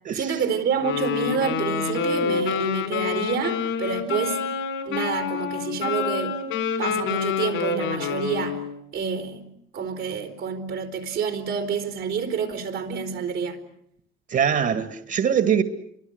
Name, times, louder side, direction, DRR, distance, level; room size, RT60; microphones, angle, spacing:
voice 1, 0.1-4.4 4.9-6.4 6.8-8.6 8.9-9.5 9.7-13.6, right 6 dB, 90° right, 4.1 m, -28 dB
Wind instrument woodwind instrument, 0.7-8.7, left 6 dB, 90° left, 5.8 m, -27 dB
voice 2, 14.3-15.6, right 8 dB, 60° right, 1.9 m, -22 dB
29.5 x 24.5 x 8.0 m
cardioid pair, 90°, 20 cm